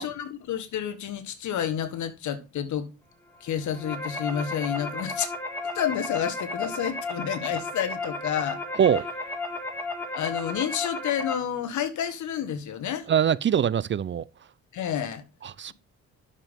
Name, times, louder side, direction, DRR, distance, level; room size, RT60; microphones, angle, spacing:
voice 1, 0.0-2.9 3.4-5.3 5.7-8.6 10.1-13.1 14.7-15.2, left 9 dB, 75° left, 1.5 m, -30 dB
sound 1, 3.5-11.3, left 2 dB, 5° left, 3.1 m, -33 dB
voice 2, 13.1-14.2 15.4-15.7, right 8 dB, 40° right, 0.5 m, -23 dB
10.5 x 7.0 x 3.6 m
cardioid pair, 90°, 30 cm